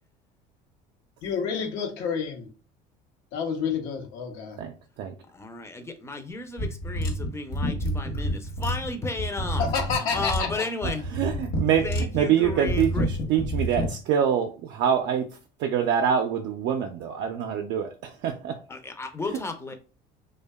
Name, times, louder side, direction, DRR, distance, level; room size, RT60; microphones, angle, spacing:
voice 1, 1.2-2.5 3.3-4.6 9.6-10.7, left 6 dB, 75° left, 0.7 m, -29 dB
voice 2, 5.3-9.7 10.0-11.0 11.8-13.1 18.7-19.7, left 3 dB, 15° left, 0.5 m, -33 dB
sound 1, 6.6-13.9, equal, 50° left, 0.9 m, -29 dB
voice 3, 11.1-11.9 12.1-15.3 15.6-18.6, right 8 dB, 60° right, 0.4 m, -25 dB
2.6 x 2.2 x 2.2 m
supercardioid pair, 85°, 21 cm